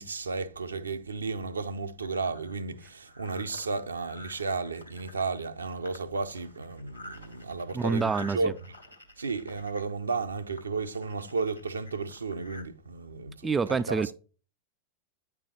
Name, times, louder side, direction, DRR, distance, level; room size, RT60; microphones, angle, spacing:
voice 1, 0.0-8.5 9.2-14.0, right 4 dB, 75° right, 0.6 m, -33 dB
sound 1, 2.0-12.6, left 1 dB, 90° left, 1.3 m, -50 dB
voice 2, 7.7-8.5 13.4-14.1, right 5 dB, 15° right, 0.3 m, -27 dB
8.9 x 4.8 x 4.1 m
figure-of-eight pair, 90°, 0 cm